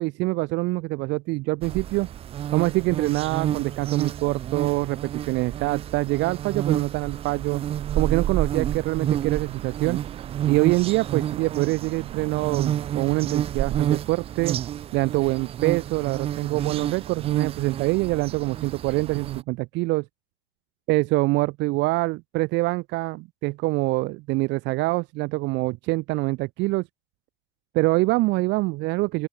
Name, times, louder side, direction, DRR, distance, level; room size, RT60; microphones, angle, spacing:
voice 1, 0.0-2.1 2.5-7.6 7.9-10.0 10.5-14.6 14.9-20.1 20.9-26.8 27.7-29.3, right 22 dB, 35° right, 2.0 m, -25 dB
sound 1, 1.6-19.4, right 11 dB, 15° right, 1.0 m, -29 dB
open air
supercardioid pair, 180°, 33 cm